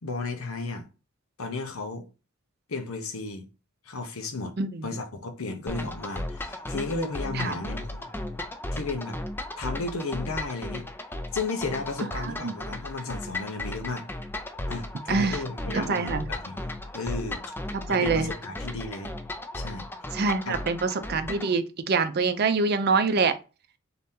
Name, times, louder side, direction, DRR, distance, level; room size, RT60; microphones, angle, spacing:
voice 1, 0.0-0.9 1.4-2.0 2.7-3.5 3.9-4.5 4.8-8.1 8.7-9.2 9.6-10.9 11.3-14.1 14.7-17.5 17.9-19.1 19.5-19.9 20.5-20.6, left 3 dB, 85° left, 0.8 m, -34 dB
voice 2, 4.6-4.9 7.3-7.6 12.2-12.5 15.1-15.4 15.7-16.2 17.7-18.3 20.1-23.3, right 4 dB, 50° right, 0.5 m, -25 dB
sound 1, 5.7-21.5, left 1 dB, 10° left, 0.4 m, -35 dB
3.9 x 2.8 x 3.6 m
head